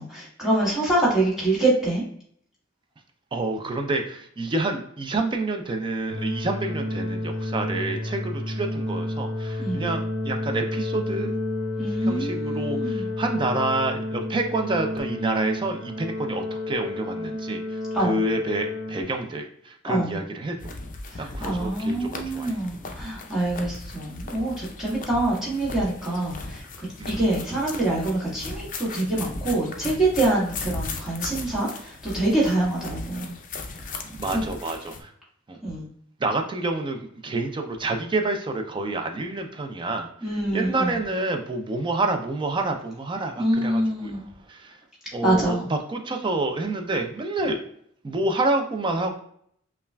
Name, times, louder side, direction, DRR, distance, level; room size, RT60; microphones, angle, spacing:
voice 1, 0.0-2.0 9.6-9.9 11.8-13.1 17.9-18.2 19.8-20.2 21.1-33.4 34.3-34.4 35.6-35.9 40.2-41.0 43.4-44.2 45.2-45.6, right 2 dB, ahead, -7 dB, 1.5 m, -25 dB
voice 2, 3.3-11.4 12.1-20.6 21.2-22.5 27.0-27.2 34.1-35.1 35.5-35.6 36.2-40.1 40.5-44.1 44.5-44.8 45.1-45.6 45.9-47.6 48.0-49.2, right 2 dB, 25° right, 4 dB, 0.4 m, -28 dB
sound 1, 6.1-19.0, left 2 dB, 80° right, 0.8 m, -30 dB
sound 2, 20.6-35.0, left 3 dB, 40° left, 0.5 m, -37 dB
5.4 x 2.3 x 2.2 m, 0.66 s
head